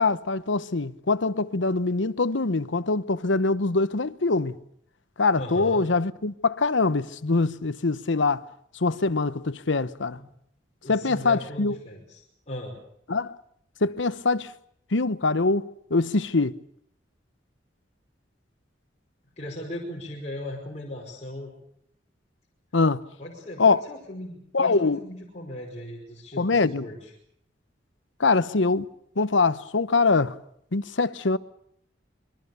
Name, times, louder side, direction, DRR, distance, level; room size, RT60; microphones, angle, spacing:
voice 1, 0.0-4.6 5.2-8.4 8.8-10.2 10.9-11.7 13.1-13.4 13.8-14.5 14.9-16.6 22.7-23.1 23.6-23.8 24.5-25.0 26.4-26.9 28.2-28.9 29.2-30.4 30.7-31.4, left 3 dB, 90° left, 1.0 m, -23 dB
voice 2, 5.4-5.8 10.1-10.3 10.8-12.7 19.4-21.5 23.2-27.1, left 1 dB, 40° left, 5.3 m, -38 dB
27.5 x 23.0 x 6.9 m
head